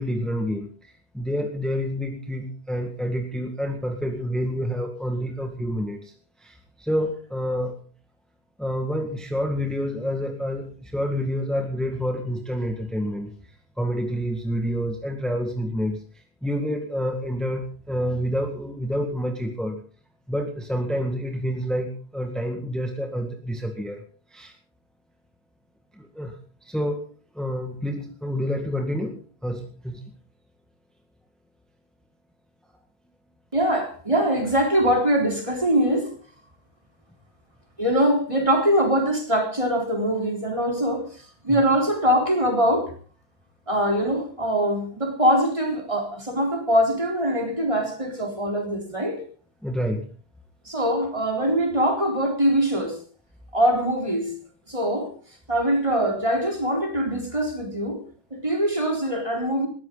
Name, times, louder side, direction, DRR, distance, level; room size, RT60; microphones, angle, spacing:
voice 1, 0.0-6.1 6.4-7.8 8.6-13.3 13.8-16.0 16.4-19.8 20.3-24.0 24.3-24.5 26.0-26.4 26.6-27.0 27.4-30.0 41.5-41.6 49.6-50.1, equal, ahead, 1.9 m, -28 dB
voice 2, 33.5-36.1 37.8-41.1 41.4-42.9 43.7-49.2 50.7-53.0 53.5-54.4 54.7-55.1 55.5-58.0 58.3-59.7, equal, 30° right, 4.1 m, -23 dB
20.0 x 14.5 x 4.0 m
omnidirectional pair, 1.1 m